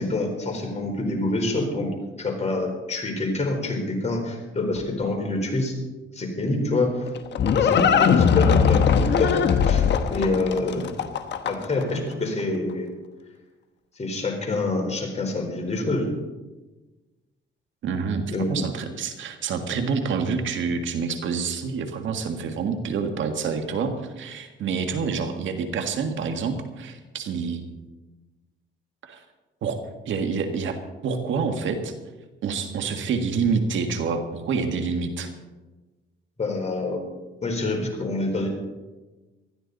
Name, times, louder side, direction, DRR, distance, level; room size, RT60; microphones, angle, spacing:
voice 1, 0.0-1.9 2.2-5.7 6.1-7.0 7.6-9.8 10.1-10.9 11.4-12.9 14.0-16.1 18.3-18.7 36.4-37.0 37.4-38.5, left 2 dB, 35° left, 2 dB, 4.3 m, -26 dB
Livestock farm animals working animals, 6.8-11.8, left 7 dB, 60° left, 1.2 m, -20 dB
voice 2, 17.8-27.6 29.0-29.2 29.6-29.8 30.1-31.9 32.4-35.3, right 5 dB, 75° right, 6 dB, 1.9 m, -27 dB
19.5 x 13.5 x 4.1 m, 1.2 s
cardioid pair, 90°, 20 cm